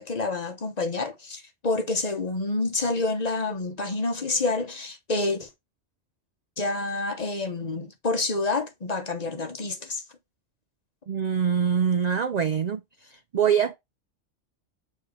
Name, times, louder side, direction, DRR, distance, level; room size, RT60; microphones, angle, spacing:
voice 1, 0.0-5.5 6.6-10.0, left 3 dB, 40° left, 0.9 m, -28 dB
voice 2, 11.1-12.8 13.1-13.8, right 7 dB, 55° right, 0.4 m, -24 dB
7.1 x 3.2 x 4.8 m
omnidirectional pair, 1.2 m